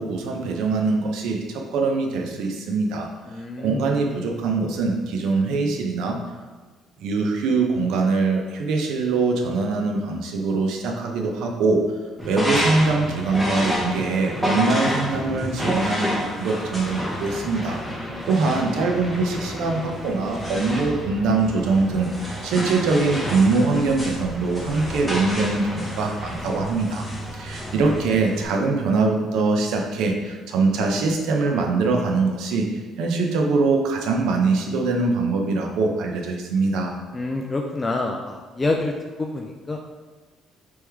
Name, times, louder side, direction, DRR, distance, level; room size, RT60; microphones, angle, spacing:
voice 1, 0.0-3.1 3.6-6.2 7.0-11.8 12.2-17.8 18.3-27.1 27.3-32.7 33.0-36.9, right 3 dB, 80° right, 2 dB, 0.6 m, -23 dB
voice 2, 3.3-3.9 4.1-4.3 17.9-18.3 27.3-27.7 28.1-28.2 37.1-39.8, left 2 dB, 20° left, 1 dB, 0.3 m, -28 dB
sound 1, 12.2-28.4, equal, 5° right, 0.9 m, -29 dB
3.5 x 3.1 x 4.5 m, 1.4 s
cardioid pair, 130°, 0 cm